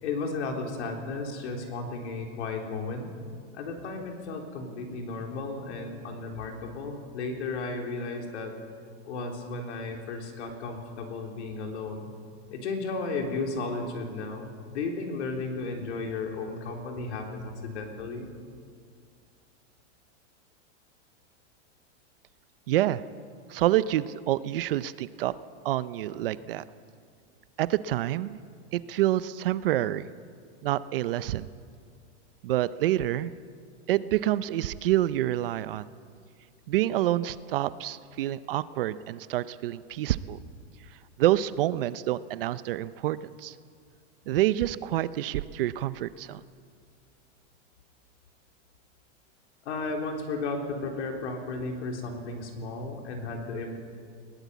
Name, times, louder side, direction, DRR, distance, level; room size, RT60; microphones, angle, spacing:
voice 1, 0.0-3.1 3.5-8.6 9.0-12.1 12.5-18.3 49.6-53.8, left 3 dB, 65° left, 2 dB, 3.9 m, -34 dB
voice 2, 22.7-23.0 23.5-25.3 25.6-26.6 27.6-28.4 28.7-30.1 30.6-31.5 32.4-33.3 33.9-35.9 36.7-40.4 41.2-43.5 44.3-46.4, right 14 dB, 50° right, 16 dB, 0.6 m, -27 dB
21.0 x 17.5 x 8.2 m, 2.2 s
supercardioid pair, 170°, 36 cm